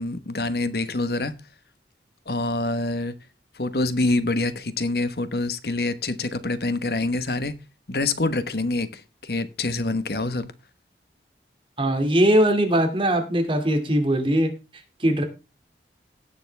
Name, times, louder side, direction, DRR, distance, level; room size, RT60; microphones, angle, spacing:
voice 1, 0.0-1.3 2.3-3.1 3.5-7.5 7.9-10.5, left 2 dB, 60° left, 1.2 m, -26 dB
voice 2, 11.8-14.5 15.0-15.2, right 1 dB, 30° right, 2.3 m, -20 dB
17.0 x 7.2 x 3.4 m
head